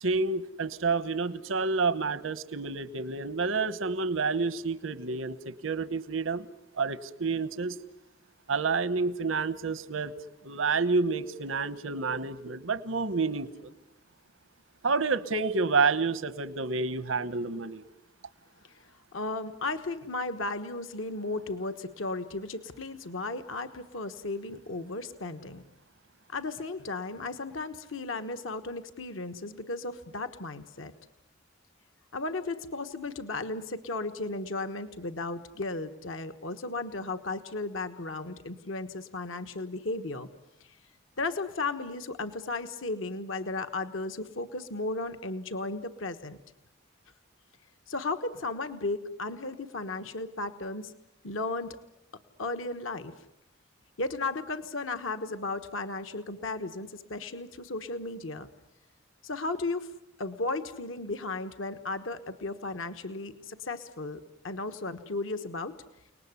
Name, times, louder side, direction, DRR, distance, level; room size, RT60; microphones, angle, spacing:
voice 1, 0.0-6.5 6.7-7.8 8.5-10.1 10.4-13.7 14.8-17.8, right 4 dB, 80° right, 13 dB, 1.1 m, -29 dB
voice 2, 19.1-25.6 26.3-30.9 32.1-40.3 41.2-46.4 47.9-50.9 51.2-51.8 52.4-53.1 54.0-58.5 59.2-59.9 60.2-64.2 64.4-65.7, left 3 dB, 75° left, 9 dB, 1.3 m, -35 dB
30.0 x 19.5 x 9.7 m, 0.94 s
head